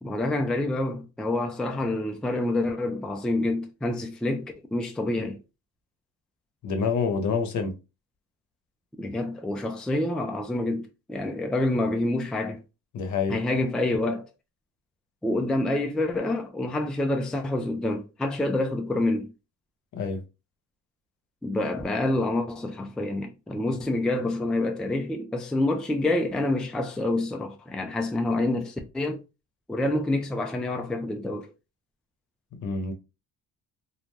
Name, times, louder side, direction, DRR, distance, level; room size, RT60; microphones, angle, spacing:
voice 1, 0.0-5.4 9.0-12.6 13.3-14.3 15.2-19.3 21.4-29.2 29.7-31.5, left 2 dB, ahead, 0.4 m, -27 dB
voice 2, 6.6-7.8 12.9-13.4 19.9-20.2 32.6-32.9, left 5 dB, 55° left, 0.8 m, -27 dB
2.5 x 2.1 x 3.1 m
cardioid pair, 95°, 34 cm